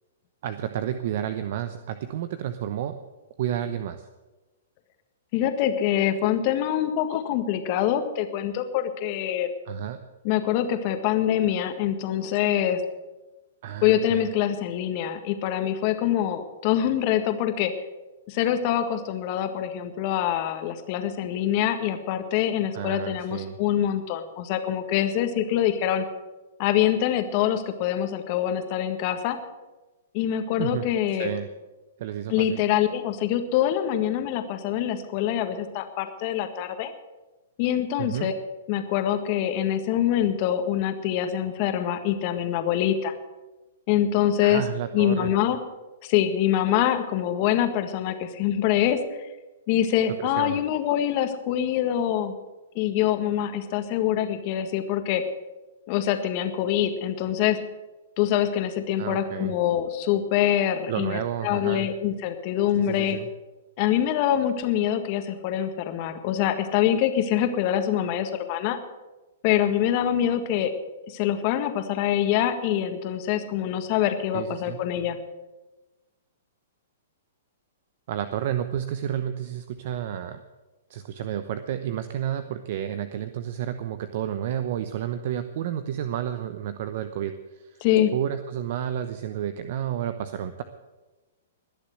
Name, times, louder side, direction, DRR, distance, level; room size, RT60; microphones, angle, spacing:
voice 1, 0.4-3.0 3.4-4.1 9.7-10.0 13.6-14.3 22.7-23.6 30.6-30.9 31.2-31.5 32.0-32.6 38.0-38.3 44.4-45.3 50.2-50.6 59.0-59.5 60.9-61.9 62.8-63.3 74.3-74.8 78.1-80.4 80.9-87.8 88.1-90.6, right 10 dB, 55° right, 10 dB, 0.9 m, -31 dB
voice 2, 5.3-9.5 10.2-12.8 13.8-17.7 18.3-26.0 26.6-29.4 30.1-31.3 32.3-36.9 37.6-38.3 38.7-43.1 43.9-44.6 44.9-45.6 46.0-49.0 49.7-52.3 52.7-55.2 55.9-57.6 58.2-63.2 63.8-68.8 69.4-70.7 71.1-75.2 87.8-88.1, left 11 dB, 45° left, 8 dB, 1.7 m, -25 dB
21.0 x 7.1 x 7.9 m, 1.1 s
hypercardioid pair, 125°, 0 cm